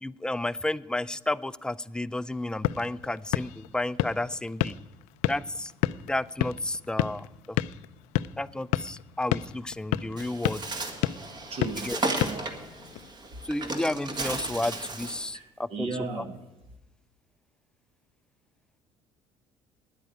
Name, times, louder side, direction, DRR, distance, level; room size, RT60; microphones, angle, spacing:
voice 1, 0.0-4.7 5.3-5.7 6.0-7.6 8.4-10.6 11.8-12.3 13.4-15.9 16.2-16.3, left 1 dB, 5° left, 17 dB, 0.4 m, -32 dB
sound 1, 2.3-13.1, left 15 dB, 85° left, 0.4 m, -32 dB
Bird, 10.2-15.3, right 2 dB, 35° right, 1.8 m, -34 dB
voice 2, 11.5-11.9 12.2-12.5 15.3-15.4 15.7-16.4, right 4 dB, 55° right, 6 dB, 1.8 m, -35 dB
10.0 x 8.4 x 9.2 m, 0.96 s
supercardioid pair, 95°, 12 cm